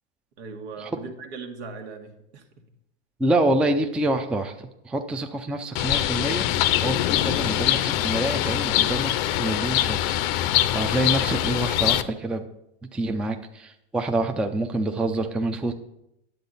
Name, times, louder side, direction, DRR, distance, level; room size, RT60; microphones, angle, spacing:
voice 1, 0.4-2.6, right 4 dB, 80° right, 5 dB, 1.5 m, -39 dB
voice 2, 3.2-12.4 12.9-15.7, right 2 dB, 5° right, 5 dB, 0.4 m, -27 dB
Bird, 5.8-12.0, left 13 dB, 60° left, 0.6 m, -23 dB
10.0 x 7.7 x 4.1 m, 0.84 s
supercardioid pair, 135°, 33 cm